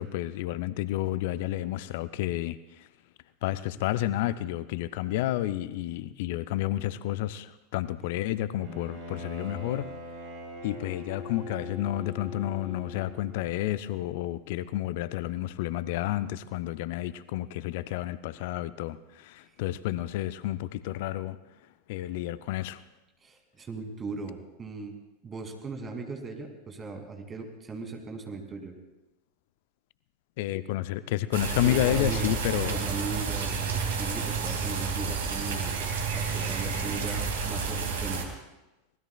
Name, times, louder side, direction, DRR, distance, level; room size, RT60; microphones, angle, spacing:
voice 1, 0.0-2.9 3.4-9.9 10.6-21.4 21.9-22.8 30.4-32.8, left 14 dB, 55° left, 15 dB, 0.5 m, -30 dB
Bowed string instrument, 8.6-13.5, equal, 45° right, 5.9 m, -41 dB
voice 2, 23.2-28.7 31.6-32.3 32.6-35.8 36.1-38.3, right 4 dB, 25° right, 4 dB, 2.5 m, -38 dB
sound 1, 31.3-38.3, right 5 dB, 65° right, 2.3 m, -30 dB
24.5 x 19.0 x 2.3 m, 1.0 s
figure-of-eight pair, 85°, 0 cm